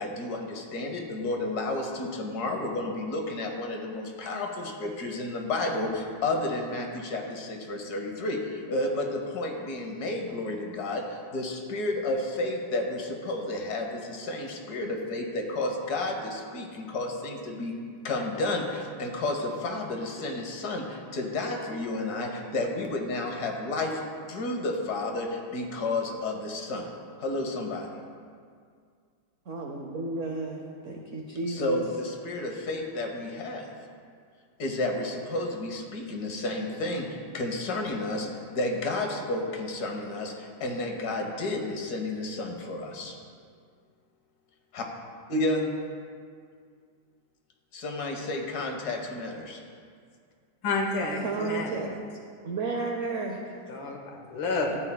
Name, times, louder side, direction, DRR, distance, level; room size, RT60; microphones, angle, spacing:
voice 1, 0.0-17.8 18.0-24.0 24.3-26.9 27.2-27.9 31.5-33.7 34.6-43.2 44.7-44.9 45.3-45.7 47.7-49.6, left 2 dB, 60° left, 2 dB, 1.4 m, -31 dB
voice 2, 29.5-31.8 51.2-51.9 52.4-53.4, right 3 dB, 80° right, 1 dB, 0.6 m, -32 dB
voice 3, 50.6-51.7 53.7-54.8, left 3 dB, 80° left, 1 dB, 1.9 m, -29 dB
14.0 x 8.7 x 2.2 m, 2.2 s
omnidirectional pair, 2.2 m